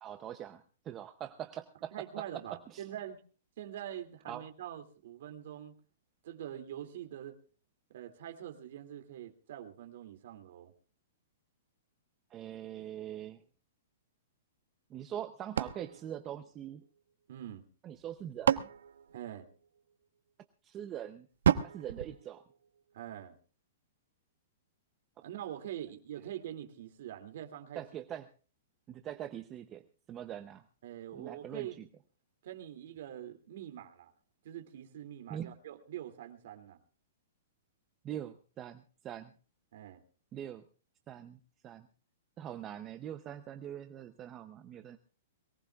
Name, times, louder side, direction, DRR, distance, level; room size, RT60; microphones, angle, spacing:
voice 1, 0.0-2.2 2.7-2.9 4.3-4.4 12.3-13.4 14.9-16.8 17.8-18.7 20.6-21.3 21.6-22.4 27.8-28.3 28.9-30.6 31.1-31.9 35.3-35.6 38.0-39.3 40.3-40.6 41.1-41.9 42.4-45.0, right 10 dB, 15° right, 8 dB, 0.6 m, -43 dB
voice 2, 1.9-3.2 3.6-5.7 6.2-7.4 7.9-10.7 17.3-17.6 19.1-19.5 22.9-23.4 25.2-27.8 30.8-31.8 32.4-34.1 34.4-36.8 39.7-40.0, right 11 dB, 45° right, 6 dB, 2.5 m, -44 dB
sound 1, 15.6-17.1 18.0-19.9 21.4-23.0, right 8 dB, 80° right, 1.2 m, -33 dB
22.5 x 18.0 x 2.4 m, 0.38 s
hypercardioid pair, 180°, 0 cm